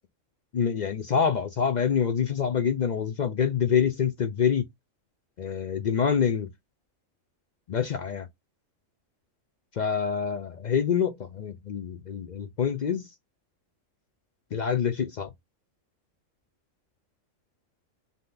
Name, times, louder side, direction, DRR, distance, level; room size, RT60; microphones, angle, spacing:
voice 1, 0.5-4.7 5.4-6.5 7.7-8.3 9.7-13.1 14.5-15.3, left 7 dB, 60° left, 0.4 m, -26 dB
5.5 x 2.2 x 3.8 m
omnidirectional pair, 1.3 m